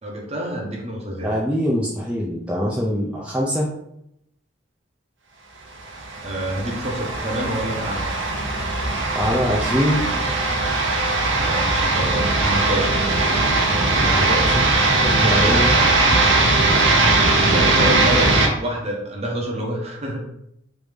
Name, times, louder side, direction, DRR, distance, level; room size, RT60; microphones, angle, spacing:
voice 1, 0.0-1.3 6.2-8.1 11.4-13.0 14.2-14.4 15.2-15.7 17.3-18.3 18.6-20.2, right 1 dB, 30° right, 0 dB, 0.7 m, -27 dB
voice 2, 1.2-3.7 9.1-10.2 14.0-14.6 14.9-15.7, equal, 5° right, -5 dB, 0.3 m, -24 dB
sound 1, 5.9-18.5, right 2 dB, 65° right, 0.6 m, -19 dB
3.2 x 2.6 x 3.3 m, 0.78 s
head